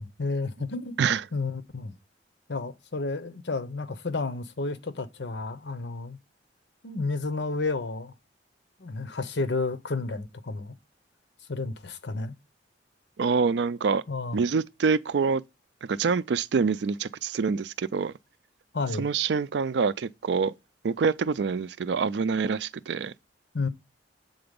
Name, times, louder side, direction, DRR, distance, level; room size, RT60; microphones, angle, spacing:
voice 1, 0.0-1.0 1.3-1.9 2.5-6.2 6.8-8.1 8.8-10.7 11.5-12.4 14.1-14.4 18.7-19.0 23.5-23.7, left 3 dB, 70° left, 0.9 m, -31 dB
voice 2, 13.2-14.0 14.3-15.4 15.8-18.1 19.0-20.5 20.8-23.1, right 5 dB, 70° right, 0.4 m, -26 dB
7.8 x 4.0 x 5.2 m
head